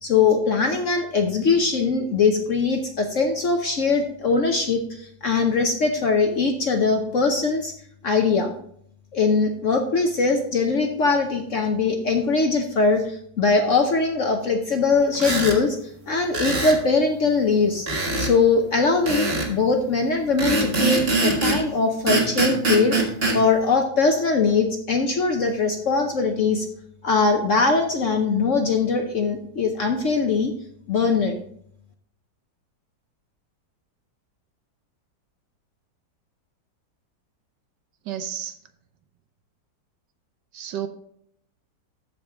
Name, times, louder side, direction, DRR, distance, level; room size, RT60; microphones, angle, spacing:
voice 1, 0.0-7.7 8.0-8.5 9.1-15.8 16.1-17.9 18.2-23.0 23.3-26.7 27.0-30.5 30.9-31.4, left 4 dB, 55° left, 4 dB, 0.9 m, -21 dB
sound 1, 15.1-15.6 16.3-16.8 17.9-18.3 19.1-19.5 20.4-21.6 22.1-23.4, right 2 dB, 30° right, 1.8 m, -23 dB
voice 2, 38.1-38.5 40.5-40.9, right 10 dB, 70° right, 10 dB, 1.3 m, -31 dB
14.0 x 5.2 x 3.6 m, 0.67 s
omnidirectional pair, 2.1 m